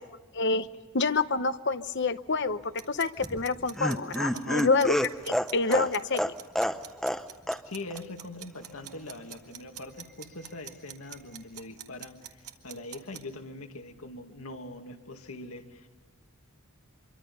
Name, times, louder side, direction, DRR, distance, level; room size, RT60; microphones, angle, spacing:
voice 1, 0.3-0.7 0.9-5.0 5.2-6.3, left 4 dB, 55° left, 12 dB, 1.0 m, -27 dB
sound 1, 2.8-13.2, right 11 dB, 85° right, 1.9 m, -45 dB
Laughter, 3.2-7.2 7.5-7.6 7.9-8.0, equal, ahead, 0.8 m, -29 dB
voice 2, 4.3-4.7 7.6-15.9, left 2 dB, 75° left, 5 dB, 2.3 m, -42 dB
26.5 x 23.5 x 5.5 m, 1.2 s
head